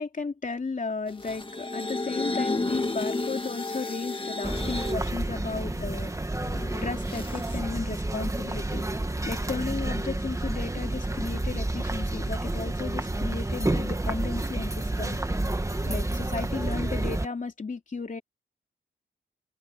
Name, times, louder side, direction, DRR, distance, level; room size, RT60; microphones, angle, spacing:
voice 1, 0.0-6.3 6.8-8.9 9.2-15.2 15.8-18.2, left 4 dB, 40° left, 3.0 m, -34 dB
sound 1, 1.1-5.0 5.5-7.6, left 2 dB, 25° left, 1.8 m, -32 dB
sound 2, 4.4-17.3, right 2 dB, 15° right, 1.7 m, -30 dB
open air
wide cardioid pair, 95°, 20 cm